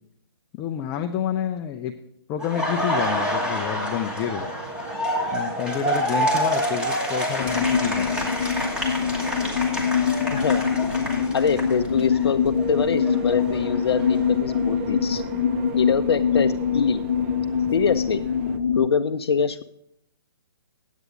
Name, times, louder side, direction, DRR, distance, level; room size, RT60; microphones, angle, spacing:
voice 1, 0.5-2.0 2.3-4.5 5.3-8.3, left 9 dB, 20° left, 5 dB, 0.4 m, -29 dB
Laughter, 2.4-12.2 12.6-14.6, equal, 5° right, 1.5 m, -28 dB
sound 1, 2.6-18.6, right 5 dB, 30° right, 0.7 m, -40 dB
sound 2, 7.4-18.9, left 7 dB, 45° left, 0.8 m, -24 dB
voice 2, 10.3-15.2 15.8-17.0 17.7-18.2 18.8-19.6, left 6 dB, 75° left, 7 dB, 0.5 m, -24 dB
9.8 x 8.2 x 5.0 m, 0.73 s
hypercardioid pair, 145°, 13 cm